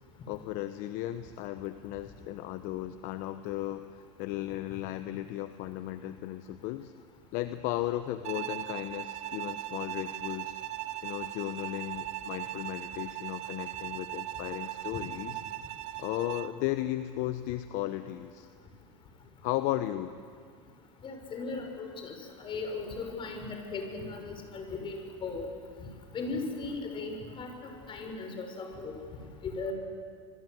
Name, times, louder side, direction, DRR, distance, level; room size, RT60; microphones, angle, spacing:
voice 1, 0.3-6.9 7.3-10.6 11.0-15.4 16.0-18.5 19.4-20.1, left 14 dB, 60° left, 10 dB, 1.0 m, -35 dB
Bowed string instrument, 8.2-16.6, right 15 dB, 50° right, 1.2 m, -39 dB
voice 2, 21.0-25.5 25.8-25.9 26.1-28.9 29.4-29.7, left 3 dB, 35° left, 4 dB, 5.9 m, -37 dB
26.0 x 23.0 x 8.0 m, 2.1 s
supercardioid pair, 120°, 16 cm